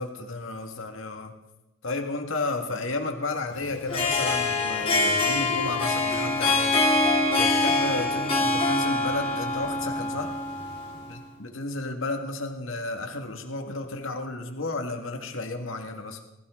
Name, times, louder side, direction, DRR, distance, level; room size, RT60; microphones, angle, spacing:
voice 1, 0.0-1.3 1.8-10.3 11.1-16.2, left 2 dB, 85° left, 4 dB, 1.9 m, -33 dB
Harp, 3.7-11.1, left 2 dB, 30° left, 3.5 m, -24 dB
20.5 x 15.5 x 3.8 m, 1.0 s
head